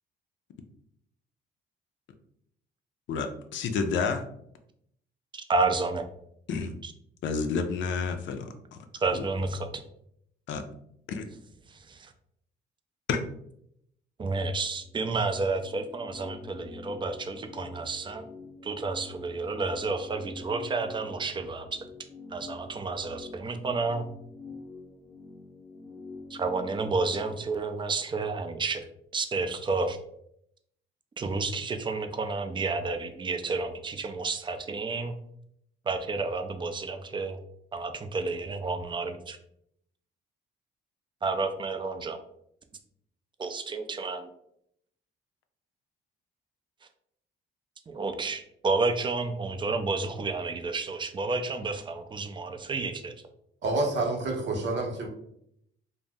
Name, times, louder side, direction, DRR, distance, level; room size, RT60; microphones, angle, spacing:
voice 1, 3.1-4.2 6.5-6.7 7.2-8.9 9.1-9.2 10.5-10.6 11.1-11.2 13.1-13.2, left 5 dB, 70° left, 6 dB, 0.4 m, -30 dB
voice 2, 5.3-6.1 6.8-6.9 9.0-9.8 11.7-12.1 14.2-18.3 18.6-21.9 22.3-24.1 26.3-28.8 29.1-30.0 31.2-35.1 35.9-37.4 37.7-39.4 41.2-42.2 43.4-44.3 47.9-53.1, right 3 dB, 25° right, 7 dB, 0.4 m, -30 dB
sound 1, 14.8-27.3, left 3 dB, 20° left, 0.7 m, -46 dB
voice 3, 53.6-55.1, right 2 dB, 65° right, 1 dB, 0.8 m, -28 dB
2.6 x 2.0 x 3.4 m, 0.72 s
cardioid pair, 90°, 20 cm